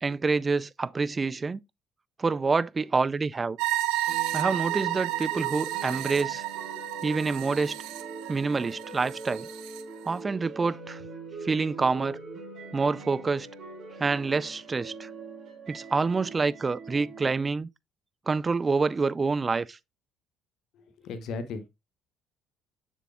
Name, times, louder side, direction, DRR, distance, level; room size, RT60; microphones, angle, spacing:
voice 1, 0.0-1.6 2.2-3.6 4.3-6.4 7.0-7.8 8.3-9.5 10.1-11.0 11.4-12.2 12.7-13.5 14.0-15.1 15.7-17.7 18.3-19.8, right 4 dB, 30° right, 0.4 m, -27 dB
sound 1, 3.6-9.8, right 15 dB, 70° right, 0.7 m, -32 dB
sound 2, 4.1-17.3, right 3 dB, 50° right, 2.8 m, -42 dB
voice 2, 20.7-21.7, left 4 dB, 60° left, 1.1 m, -36 dB
7.3 x 6.8 x 2.4 m
hypercardioid pair, 55°, 0 cm